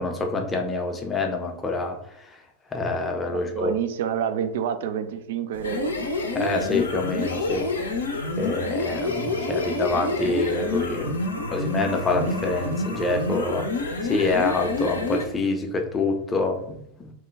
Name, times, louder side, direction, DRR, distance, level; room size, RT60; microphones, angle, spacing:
voice 1, 0.0-2.4 2.7-3.7 6.3-7.7 8.4-11.2 11.5-13.7 14.0-17.1, left 3 dB, 15° left, 4 dB, 0.5 m, -26 dB
voice 2, 3.3-6.0, right 8 dB, 55° right, 9 dB, 0.3 m, -28 dB
sound 1, 5.5-15.3, left 2 dB, 70° left, 0.5 m, -28 dB
3.0 x 2.2 x 3.4 m, 0.75 s
figure-of-eight pair, 90°, 0 cm